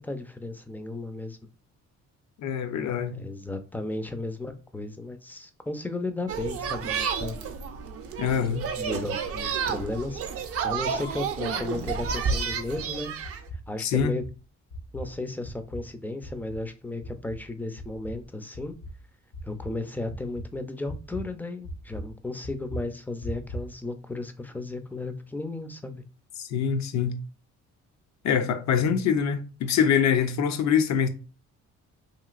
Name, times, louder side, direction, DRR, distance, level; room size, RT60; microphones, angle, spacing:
voice 1, 0.0-1.4 3.1-7.4 8.8-10.2 10.6-13.1 13.7-14.2 14.9-18.7 19.4-26.0, left 2 dB, 5° left, 0.4 m, -34 dB
voice 2, 2.4-3.2 8.2-8.6 13.8-14.1 26.5-27.2 28.2-31.1, left 7 dB, 65° left, 0.6 m, -24 dB
sound 1, 6.3-13.4, right 6 dB, 50° right, 0.5 m, -31 dB
sound 2, 12.5-12.9 13.2-13.6 14.0-14.3 14.7-15.1 15.4-15.9 16.2-16.6 17.0-17.4 17.8-18.3 18.5-19.0 19.3-19.8 20.1-20.5 20.9-21.2 21.6-22.1 22.4-22.8 23.2-23.7, right 1 dB, 80° left, 1.1 m, -38 dB
3.0 x 2.8 x 2.4 m
cardioid pair, 90°, 30 cm